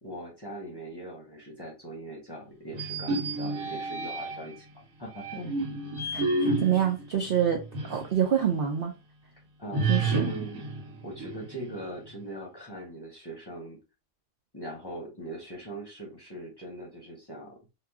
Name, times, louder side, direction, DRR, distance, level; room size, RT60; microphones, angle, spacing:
voice 1, 0.0-4.7 5.0-5.6 9.6-10.7 11.0-13.8 14.5-17.6, right 1 dB, 20° left, 0.8 m, -41 dB
sound 1, 2.7-4.6 5.2-8.1 8.5-8.6 9.7-11.8, right 3 dB, 85° right, 1.4 m, -30 dB
voice 2, 6.1-8.9 9.9-10.3, right 9 dB, 60° right, 0.6 m, -27 dB
2.9 x 2.3 x 3.4 m
omnidirectional pair, 1.5 m